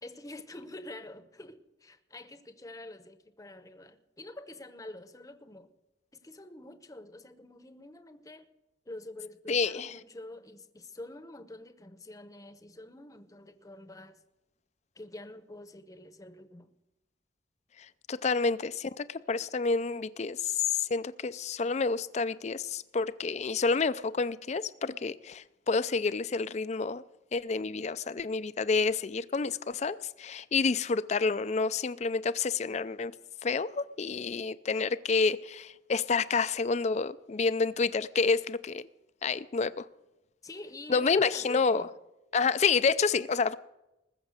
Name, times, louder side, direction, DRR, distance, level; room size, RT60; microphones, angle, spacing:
voice 1, 0.0-5.7 6.1-8.5 8.9-14.2 14.9-16.7 40.4-41.9, left 1 dB, 20° left, 0.8 m, -46 dB
voice 2, 9.5-9.9 18.1-27.0 27.3-33.1 33.4-38.8 39.2-39.9 40.9-41.8 42.3-43.6, left 4 dB, 35° left, 0.4 m, -29 dB
20.0 x 7.1 x 6.5 m
head